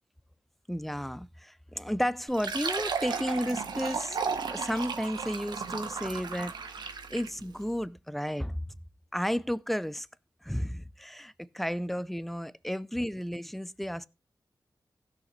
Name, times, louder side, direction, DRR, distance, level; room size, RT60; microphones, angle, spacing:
voice 1, 0.7-4.2 4.5-6.5 7.1-8.6 9.1-10.1 10.4-14.1, equal, ahead, 0.4 m, -32 dB
Fill (with liquid), 2.3-7.4, right 5 dB, 80° right, 1.1 m, -34 dB
16.0 x 6.5 x 3.1 m
wide cardioid pair, 80°, 7 cm